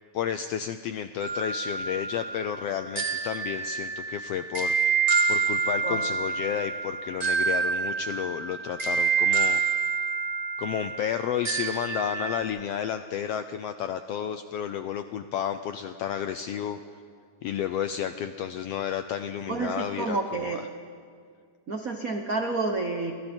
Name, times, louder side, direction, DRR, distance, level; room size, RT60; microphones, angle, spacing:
voice 1, 0.1-5.0 5.3-9.6 10.6-16.8 17.4-20.7, left 9 dB, 80° left, 9 dB, 1.4 m, -31 dB
sound 1, 1.2-12.4, right 5 dB, 25° right, 0.9 m, -28 dB
voice 2, 19.5-20.6 21.7-23.1, right 3 dB, 85° right, 4 dB, 0.7 m, -29 dB
29.0 x 25.5 x 4.5 m, 2.1 s
omnidirectional pair, 3.5 m